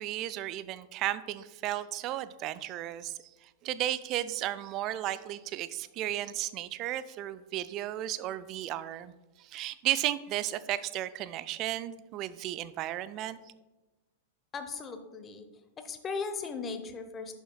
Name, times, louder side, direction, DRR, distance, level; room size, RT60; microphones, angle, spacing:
voice 1, 0.0-13.4, right 13 dB, 35° right, 15 dB, 0.4 m, -34 dB
voice 2, 14.5-15.4 15.8-17.3, left 5 dB, 20° left, 8 dB, 0.8 m, -37 dB
11.0 x 7.1 x 2.3 m, 1.2 s
figure-of-eight pair, 95°, 0 cm